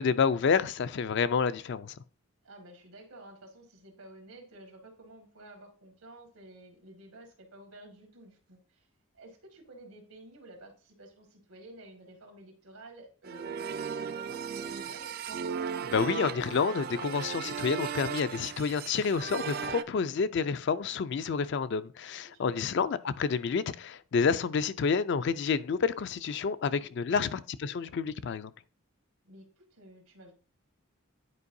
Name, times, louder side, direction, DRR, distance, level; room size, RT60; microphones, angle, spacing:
voice 1, 0.0-2.0 15.8-28.5, left 5 dB, 55° left, 0.3 m, -29 dB
voice 2, 2.4-8.9 9.1-15.1 22.2-22.8 26.6-27.4 29.2-30.3, right 1 dB, 90° right, 1.9 m, -52 dB
sound 1, 13.2-19.8, right 6 dB, 45° right, 0.3 m, -36 dB
9.7 x 4.6 x 2.6 m
head